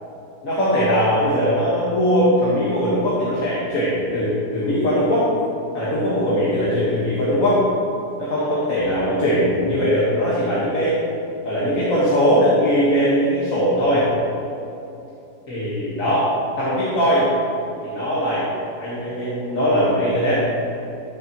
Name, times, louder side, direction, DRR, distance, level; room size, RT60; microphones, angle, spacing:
voice 1, 0.4-5.2 5.7-7.6 8.2-11.0 11.4-14.1 15.5-17.3 17.8-18.4 18.8-20.5, equal, 50° left, -9 dB, 1.9 m, -20 dB
14.0 x 6.7 x 3.0 m, 2.8 s
omnidirectional pair, 1.8 m